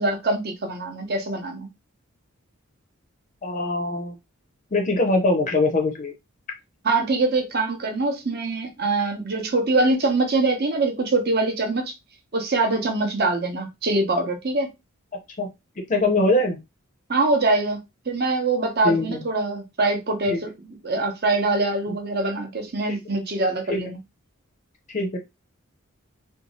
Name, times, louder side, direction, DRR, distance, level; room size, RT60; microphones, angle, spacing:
voice 1, 0.0-1.7 6.8-11.9 12.3-14.7 17.1-17.8 18.1-24.0, right 2 dB, 45° right, 0.7 m, -23 dB
voice 2, 3.4-4.2 4.7-6.1 15.4-15.5 15.9-16.6 18.8-19.2 20.3-20.4 23.7-23.8 24.9-25.2, left 2 dB, 35° left, 0.5 m, -22 dB
2.6 x 2.3 x 2.9 m
head